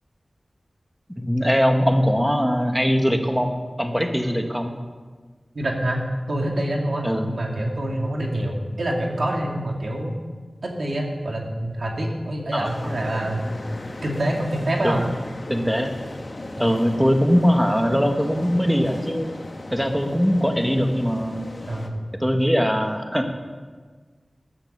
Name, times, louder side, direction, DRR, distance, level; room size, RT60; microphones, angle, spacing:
voice 1, 1.2-4.7 7.0-7.3 12.5-12.7 14.8-15.1 15.5-15.9 16.6-19.3 19.7-21.5 22.2-23.3, equal, ahead, 4 dB, 1.4 m, -21 dB
voice 2, 5.5-10.1 10.6-13.4 14.0-15.1 21.7-22.0, right 1 dB, 75° right, 0 dB, 2.4 m, -26 dB
sound 1, 12.6-21.9, left 2 dB, 55° left, 1.5 m, -37 dB
14.5 x 11.5 x 6.7 m, 1.4 s
wide cardioid pair, 60°, 0 cm